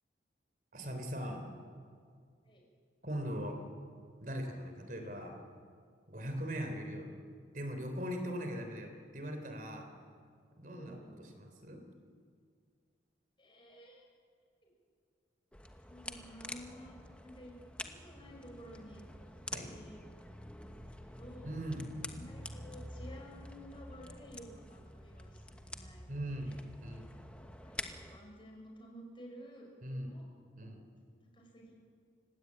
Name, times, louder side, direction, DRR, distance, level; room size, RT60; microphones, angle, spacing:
voice 1, 0.7-1.5 3.0-3.6 4.2-5.4 6.1-7.1 7.5-9.9 10.6-11.8 19.5-19.8 21.4-21.9 26.1-27.1 29.8-30.1 30.6-30.8, equal, 45° right, 5 dB, 3.8 m, -40 dB
voice 2, 10.7-11.2 13.4-14.1 14.6-14.7 15.9-17.5 17.8-19.0 19.5-20.0 20.7-21.5 22.1-25.4 25.7-26.6 27.6-30.3 31.3-31.8, equal, 25° left, 0 dB, 5.9 m, -53 dB
sound 1, 15.5-28.2, left 1 dB, 5° left, 1.2 m, -47 dB
29.5 x 17.0 x 8.8 m, 2.1 s
head